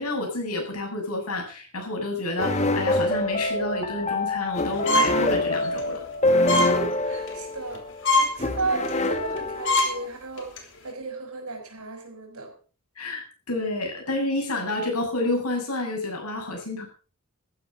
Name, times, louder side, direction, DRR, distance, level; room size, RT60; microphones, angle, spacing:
voice 1, 0.0-6.0 13.0-16.9, left 2 dB, 90° left, 1 dB, 7.3 m, -29 dB
sound 1, 2.4-10.1, left 2 dB, 30° left, 1.9 m, -26 dB
sound 2, 4.9-5.2 5.7-5.8 6.5-6.7 7.1-7.4 7.8-7.9 8.0-8.3 8.8-9.0 9.4-9.5 9.6-9.9 10.4-10.6, left 1 dB, 60° left, 3.2 m, -22 dB
voice 2, 6.6-12.5, right 3 dB, 75° right, 4 dB, 5.9 m, -34 dB
14.0 x 11.5 x 5.7 m, 0.39 s
head